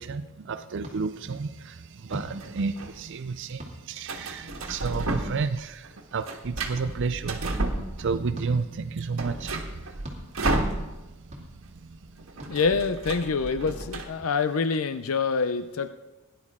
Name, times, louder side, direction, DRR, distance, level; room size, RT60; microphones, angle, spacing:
voice 1, 0.0-12.6, right 4 dB, 60° right, 11 dB, 0.5 m, -33 dB
sound 1, 0.8-1.0 2.1-2.3 3.6-3.8 5.1-5.3 6.7-6.9 8.3-8.5 10.0-10.2 11.3-11.4 12.4-12.5, equal, 30° right, 2.2 m, -38 dB
sound 2, 2.1-2.9 4.1-5.5 5.8-8.3 8.7-8.8 9.0-11.3 11.5-11.7 11.9-14.0, right 2 dB, 75° right, 1.5 m, -32 dB
voice 2, 12.5-15.9, left 5 dB, 75° left, 11 dB, 0.5 m, -26 dB
17.5 x 10.5 x 3.7 m, 1.1 s
head